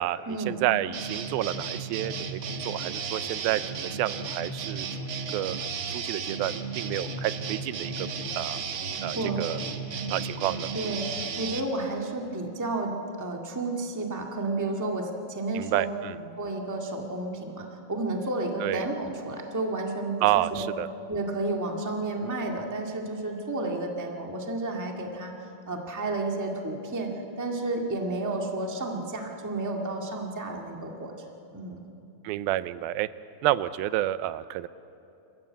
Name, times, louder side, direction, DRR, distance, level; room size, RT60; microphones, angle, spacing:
voice 1, 0.0-8.1 8.3-8.6 9.0-9.6 10.1-10.7 15.5-16.2 18.6-18.9 20.2-20.9 32.2-33.1 33.4-34.7, right 14 dB, 90° right, 15 dB, 2.5 m, -29 dB
sound 1, 0.9-11.6, right 5 dB, 65° right, 1.4 m, -34 dB
voice 2, 11.4-15.9 16.4-20.6 21.1-25.3 25.7-27.1 27.4-31.1 31.5-31.8, right 2 dB, 15° right, 1 dB, 0.7 m, -31 dB
27.5 x 15.0 x 8.6 m, 2.8 s
omnidirectional pair, 4.2 m